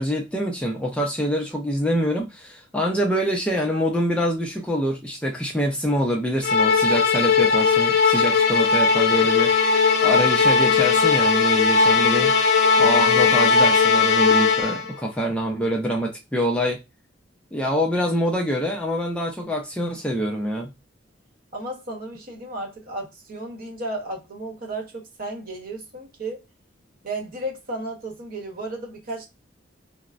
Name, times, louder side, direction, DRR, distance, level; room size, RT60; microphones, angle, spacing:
voice 1, 0.0-9.5 10.0-12.3 12.8-16.8 17.5-20.7, equal, 5° left, 0.4 m, -25 dB
Musical instrument, 6.4-15.0, left 5 dB, 55° left, 0.6 m, -18 dB
voice 2, 21.5-26.4 27.0-29.3, right 2 dB, 45° right, 0.9 m, -33 dB
4.2 x 2.0 x 2.4 m
head